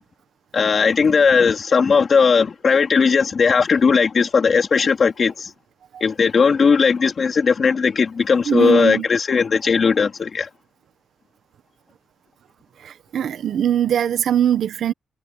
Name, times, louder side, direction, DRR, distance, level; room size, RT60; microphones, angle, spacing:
voice 1, 0.5-5.5 6.0-10.5, left 5 dB, 40° left, 3.1 m, -17 dB
voice 2, 8.4-9.1 12.8-14.9, right 10 dB, 65° right, 1.3 m, -21 dB
wide cardioid pair, 160°, 0 cm